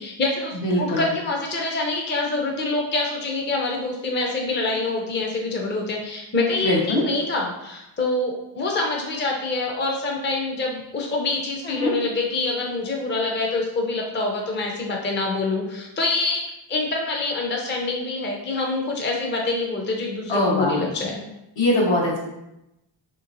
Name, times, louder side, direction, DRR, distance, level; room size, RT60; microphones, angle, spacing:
voice 1, 0.0-16.4 16.7-21.2, left 3 dB, 25° left, 0 dB, 0.5 m, -26 dB
voice 2, 0.6-1.1 6.6-7.0 11.6-11.9 20.3-20.8 21.6-22.2, left 1 dB, 70° left, -4 dB, 1.2 m, -21 dB
3.1 x 2.9 x 2.5 m, 0.89 s
cardioid pair, 90°, 46 cm